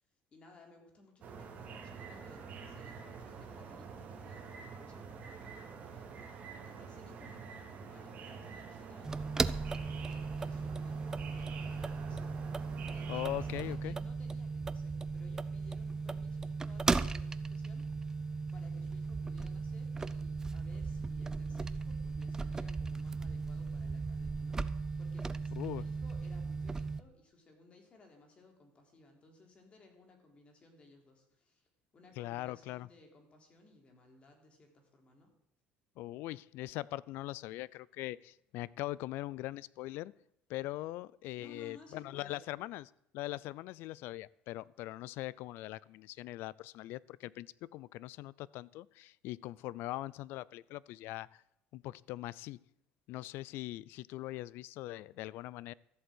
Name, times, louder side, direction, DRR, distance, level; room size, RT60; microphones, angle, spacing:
voice 1, 0.3-6.3 6.6-12.4 12.9-31.7 31.9-35.3 41.4-42.5 43.4-43.5, left 2 dB, 30° left, 3 dB, 3.6 m, -60 dB
sound 1, 1.2-13.8, right 5 dB, 40° right, 2.9 m, -47 dB
sound 2, 9.0-27.0, right 4 dB, 15° right, 0.5 m, -37 dB
voice 2, 13.1-14.0 25.5-25.8 32.2-32.9 36.0-40.1 40.5-42.9 43.1-51.4 51.7-52.6 53.1-55.7, left 17 dB, 70° left, 23 dB, 0.4 m, -41 dB
13.5 x 8.0 x 7.9 m, 0.79 s
cardioid pair, 130°, 4 cm